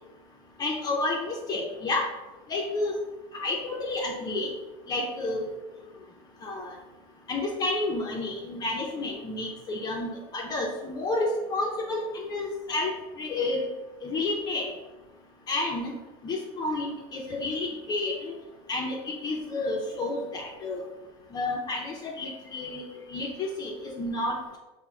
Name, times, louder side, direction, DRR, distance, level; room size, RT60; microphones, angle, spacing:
voice 1, 0.6-2.1 2.5-2.9 3.3-4.5 4.9-5.5 6.4-6.7 7.3-12.9 13.2-13.7 14.0-14.7 15.5-15.9 16.2-18.3 18.7-20.8 21.3-22.8 23.1-24.6, left 2 dB, 30° left, 0 dB, 0.5 m, -30 dB
3.5 x 2.1 x 4.3 m, 1.1 s
supercardioid pair, 135°, 14 cm